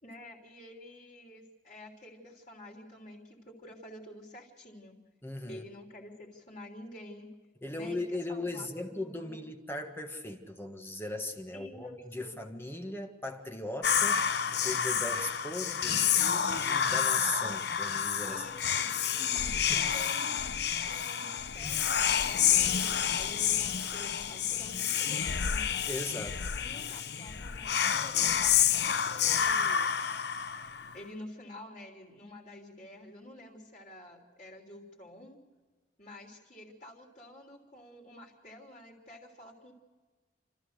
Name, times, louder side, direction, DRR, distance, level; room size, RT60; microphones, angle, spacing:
voice 1, 0.0-5.0 5.5-7.3 7.7-8.0 8.3-9.5 11.5-12.4 18.3-25.7 26.5-29.9 30.9-35.4 36.0-39.7, left 1 dB, 40° left, -3 dB, 3.3 m, -49 dB
voice 2, 5.2-5.6 7.6-18.4 19.7-19.8 25.9-26.8, left 2 dB, 10° left, 4 dB, 1.5 m, -38 dB
Whispering, 13.8-31.0, left 8 dB, 60° left, 0.8 m, -29 dB
29.0 x 14.0 x 6.6 m, 1.4 s
head